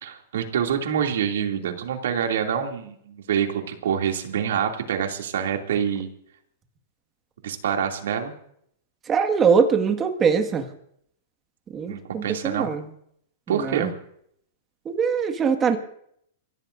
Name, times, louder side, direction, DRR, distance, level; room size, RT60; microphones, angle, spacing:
voice 1, 0.0-6.1 7.4-8.3 11.9-12.7 13.5-14.0, right 8 dB, 80° right, 3 dB, 2.7 m, -26 dB
voice 2, 9.1-10.7 11.7-12.9 13.5-13.9 14.9-15.8, right 6 dB, 20° right, 5 dB, 1.8 m, -22 dB
29.0 x 16.5 x 2.7 m, 0.69 s
hypercardioid pair, 140°, 0 cm